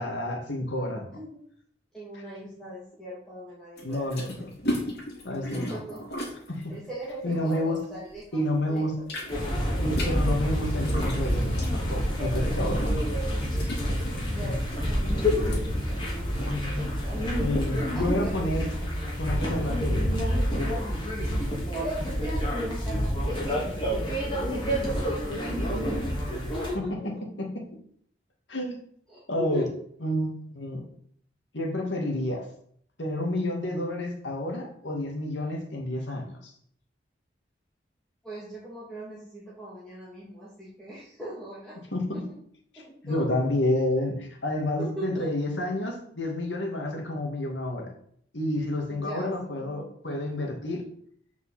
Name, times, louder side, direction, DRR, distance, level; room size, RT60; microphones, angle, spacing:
voice 1, 0.0-1.1 3.8-4.5 5.2-5.8 6.5-6.7 7.2-7.9 8.3-8.9 9.8-12.9 17.4-18.7 19.2-20.2 26.7-27.6 28.5-28.8 29.3-29.7 30.0-30.8 31.5-32.5 33.0-36.5 41.9-42.3 42.7-47.9 48.3-50.9, left 1 dB, 90° left, 1 dB, 2.5 m, -29 dB
voice 2, 1.9-4.1 4.3-4.4 5.5-6.0 6.7-8.4 8.7-8.9 14.3-17.6 17.9-18.3 21.7-27.1 29.1-29.7 38.2-41.8 42.1-42.2 42.8-43.2 44.8-45.3 48.9-49.9, equal, 5° left, -9 dB, 2.7 m, -40 dB
sound 1, 3.8-8.3 8.6-16.6, equal, 65° left, 3.5 m, -37 dB
sound 2, 9.3-26.7, equal, 25° left, 3.1 m, -28 dB
6.9 x 6.1 x 7.3 m, 0.63 s
head